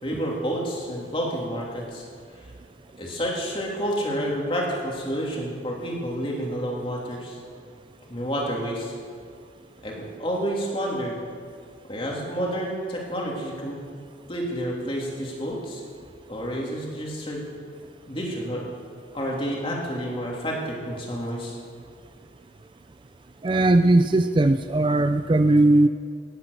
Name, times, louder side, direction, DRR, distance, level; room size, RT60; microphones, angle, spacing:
voice 1, 0.0-2.0 3.0-7.4 8.1-8.9 9.8-11.2 11.9-13.8 14.3-15.8 16.3-17.4 18.1-18.7 19.1-21.6, equal, 30° left, -2 dB, 3.1 m, -29 dB
voice 2, 23.4-25.9, right 2 dB, 25° right, 9 dB, 0.4 m, -18 dB
18.5 x 10.0 x 6.8 m, 2.1 s
head